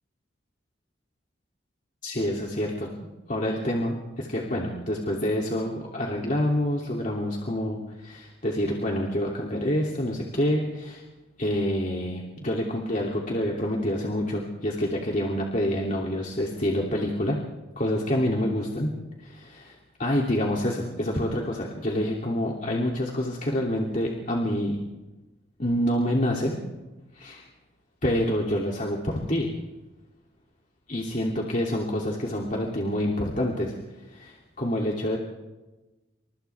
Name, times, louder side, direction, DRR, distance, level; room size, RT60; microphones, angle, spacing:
voice 1, 2.0-2.9 3.3-11.0 11.4-17.4 17.8-18.9 19.2-24.8 25.6-26.6 27.1-27.5 28.0-29.5 30.9-33.7 34.1-35.2, left 1 dB, 40° left, -2 dB, 3.0 m, -27 dB
28.5 x 26.5 x 3.6 m, 1.1 s
head